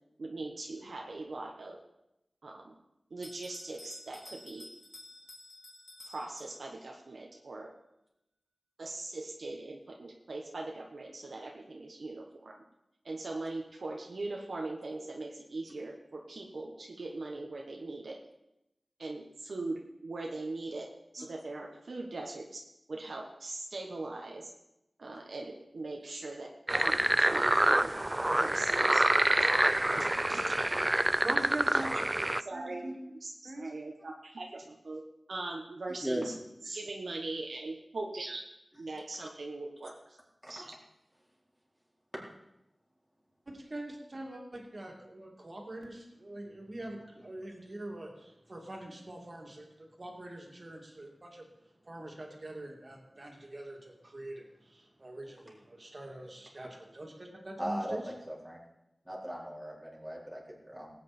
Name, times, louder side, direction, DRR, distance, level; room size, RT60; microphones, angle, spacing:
voice 1, 0.2-1.8 2.4-2.7 3.1-4.7 6.0-7.7 8.8-12.6 13.0-18.2 19.0-20.9 21.1-22.6 22.9-24.5 25.0-27.9 28.3-29.0 29.4-29.5 30.0-30.6 31.7-31.8 32.2-32.8 33.2-35.0 35.3-36.3 36.6-38.4 38.8-40.2 40.5-40.7, right 2 dB, 85° right, 0 dB, 1.2 m, -41 dB
Bell, 3.2-6.9, left 1 dB, 35° left, 2.9 m, -51 dB
sound 1, 26.7-32.4, right 1 dB, 25° right, 0.3 m, -27 dB
voice 2, 31.2-31.9 32.5-33.0 33.4-33.7 43.5-51.5 51.8-58.0, right 1 dB, 45° right, 0 dB, 2.7 m, -43 dB
voice 3, 36.0-36.3 40.4-40.6 57.6-58.6 59.0-60.9, equal, 5° right, -4 dB, 4.1 m, -38 dB
18.5 x 8.9 x 4.4 m, 0.87 s
wide cardioid pair, 70°, 0 cm